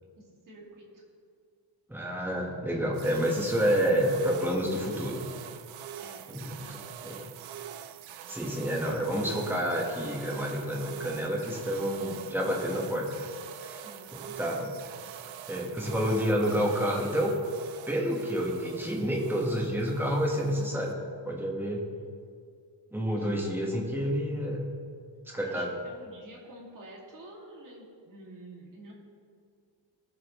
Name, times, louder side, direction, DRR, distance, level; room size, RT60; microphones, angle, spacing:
voice 1, 0.4-1.0 6.0-7.3 13.8-14.6 23.2-23.4 25.5-28.9, right 1 dB, 40° right, -3 dB, 2.4 m, -49 dB
voice 2, 1.9-5.2 6.3-7.2 8.3-13.2 13.6-13.8 14.4-14.7 15.5-17.4 17.9-20.9 21.2-21.8 22.9-24.7 25.3-25.7, equal, 5° right, -2 dB, 1.4 m, -29 dB
sound 1, 2.9-20.9, right 10 dB, 85° right, 0.7 m, -44 dB
19.0 x 7.1 x 3.1 m, 2.2 s
cardioid pair, 170°, 46 cm